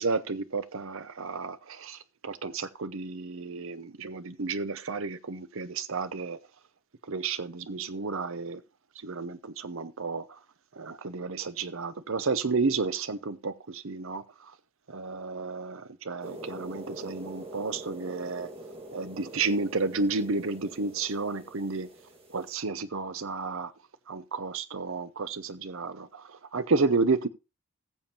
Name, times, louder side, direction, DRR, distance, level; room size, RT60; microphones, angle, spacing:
voice 1, 0.0-6.4 7.1-8.6 9.0-10.2 10.8-14.2 14.9-18.5 18.9-21.9 22.3-23.7 24.1-27.3, right 4 dB, 60° right, 0.7 m, -31 dB
sound 1, 16.2-22.6, right 1 dB, 25° right, 1.7 m, -44 dB
19.5 x 7.1 x 2.9 m
head